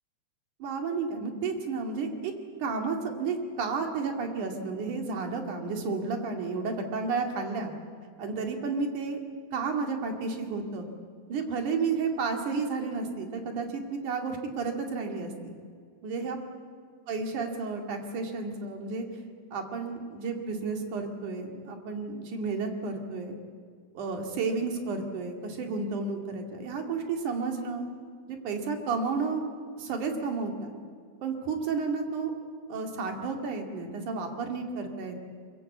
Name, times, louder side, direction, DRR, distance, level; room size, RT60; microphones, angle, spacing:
voice 1, 0.6-2.3 2.6-7.7 8.2-9.2 9.5-10.9 11.3-15.6 16.0-16.4 17.1-19.1 19.5-23.4 24.0-27.9 28.3-29.4 29.8-30.7 31.2-32.3 32.7-35.2, right 4 dB, 75° right, 3 dB, 3.7 m, -32 dB
23.0 x 22.5 x 8.4 m, 2.1 s
omnidirectional pair, 3.6 m